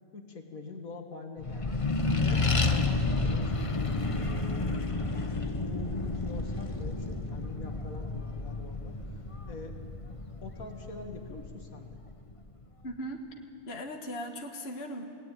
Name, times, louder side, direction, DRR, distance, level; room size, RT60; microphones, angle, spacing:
voice 1, 0.1-1.8 2.2-4.7 5.6-9.2 9.5-9.8 10.4-12.0, left 3 dB, 85° left, 4 dB, 2.5 m, -45 dB
Accelerating revving vroom, 1.4-12.3, left 3 dB, 25° left, 1.1 m, -31 dB
voice 2, 12.8-13.2 13.7-15.0, equal, 50° left, 3 dB, 1.9 m, -38 dB
28.5 x 19.0 x 9.3 m, 2.4 s
omnidirectional pair, 1.4 m